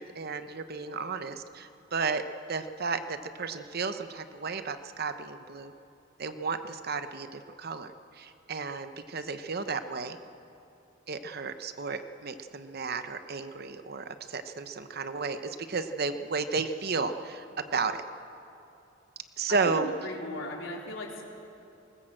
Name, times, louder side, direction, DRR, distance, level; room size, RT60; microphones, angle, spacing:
voice 1, 0.0-2.2 2.5-5.7 6.2-10.2 11.1-18.0 19.4-19.9, right 4 dB, 50° right, 9 dB, 0.9 m, -33 dB
voice 2, 19.5-21.2, left 2 dB, 80° left, -1 dB, 3.6 m, -38 dB
20.0 x 18.5 x 7.7 m, 2.8 s
head